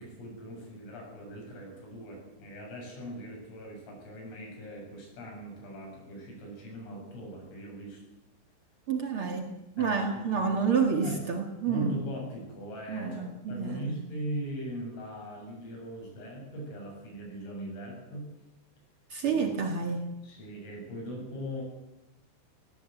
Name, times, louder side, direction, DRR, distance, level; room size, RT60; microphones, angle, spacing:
voice 1, 0.0-8.0 9.8-11.3 11.7-18.3 19.3-19.5 20.2-21.6, equal, 90° left, -1 dB, 10.5 m, -40 dB
voice 2, 8.9-9.5 9.7-12.0 12.9-14.0 19.1-20.1, right 5 dB, 80° right, 3 dB, 1.2 m, -29 dB
19.5 x 18.0 x 9.3 m, 0.94 s
omnidirectional pair, 5.7 m